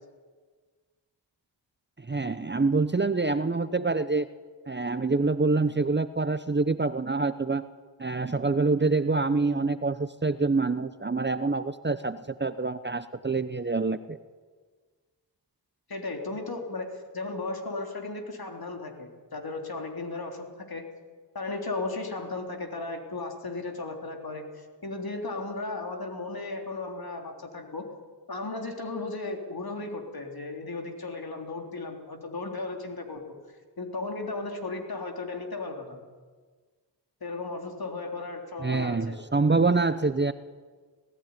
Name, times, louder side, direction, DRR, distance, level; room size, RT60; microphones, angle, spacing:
voice 1, 2.1-4.3 4.7-7.7 8.0-14.2 38.6-40.3, right 3 dB, 25° right, 13 dB, 0.8 m, -26 dB
voice 2, 15.9-20.8 21.4-27.8 28.3-33.2 33.8-36.0 37.2-39.2, left 3 dB, 55° left, 3 dB, 3.6 m, -35 dB
19.5 x 15.0 x 9.7 m, 1.5 s
cardioid pair, 45°, 44 cm